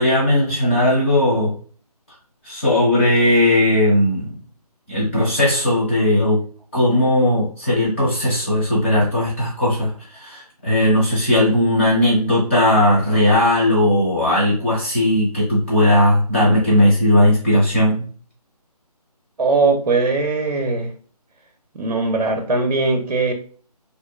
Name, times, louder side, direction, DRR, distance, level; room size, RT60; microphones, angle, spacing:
voice 1, 0.0-1.5 2.4-4.3 4.9-6.4 6.7-18.0, left 1 dB, 20° left, -7 dB, 0.9 m, -17 dB
voice 2, 19.4-20.9 21.8-23.3, right 3 dB, 75° right, 4 dB, 0.5 m, -20 dB
2.7 x 2.1 x 2.2 m, 0.42 s
figure-of-eight pair, 170°, 20 cm